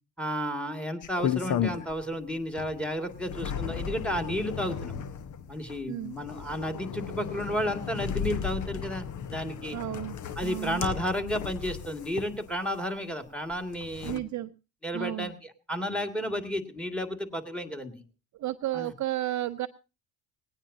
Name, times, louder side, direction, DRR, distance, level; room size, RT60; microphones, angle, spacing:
voice 1, 0.2-4.9 5.5-9.8 10.4-14.2 14.8-17.9 18.7-18.9, equal, 5° left, 7 dB, 2.2 m, -32 dB
sound 1, 1.0-2.2 2.6-12.8 13.5-14.2, left 8 dB, 45° left, 1.1 m, -35 dB
voice 2, 9.7-10.1 10.4-10.8 14.0-14.5 14.9-15.3 18.4-19.7, right 14 dB, 45° right, 10 dB, 0.7 m, -32 dB
19.0 x 18.5 x 2.7 m, 0.31 s
hypercardioid pair, 60°, 40 cm